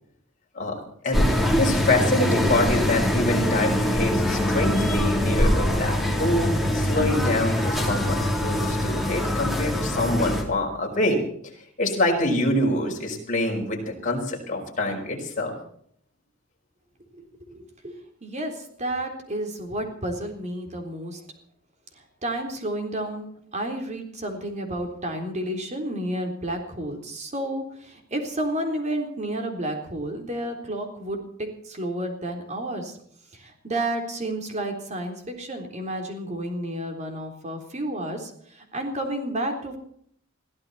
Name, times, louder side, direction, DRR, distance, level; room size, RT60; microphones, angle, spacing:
voice 1, 0.5-11.2 11.8-15.5, left 1 dB, 40° left, 0 dB, 5.1 m, -26 dB
sound 1, 1.1-10.4, left 1 dB, ahead, 3.3 m, -23 dB
voice 2, 17.1-18.0 18.2-21.2 22.2-33.0 33.3-39.8, right 1 dB, 35° right, 4 dB, 3.7 m, -31 dB
22.0 x 15.0 x 4.3 m, 0.64 s
head